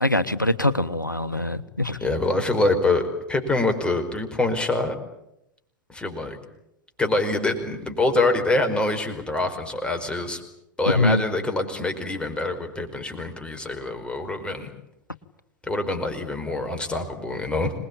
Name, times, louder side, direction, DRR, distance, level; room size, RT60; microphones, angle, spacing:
voice 1, 0.0-2.0 10.9-11.2, left 2 dB, 90° left, 16 dB, 1.1 m, -23 dB
voice 2, 2.0-4.9 5.9-6.4 7.0-10.4 10.8-14.7 15.6-17.7, left 2 dB, 10° left, 5 dB, 4.9 m, -25 dB
26.5 x 21.0 x 8.7 m, 0.83 s
figure-of-eight pair, 85°, 10 cm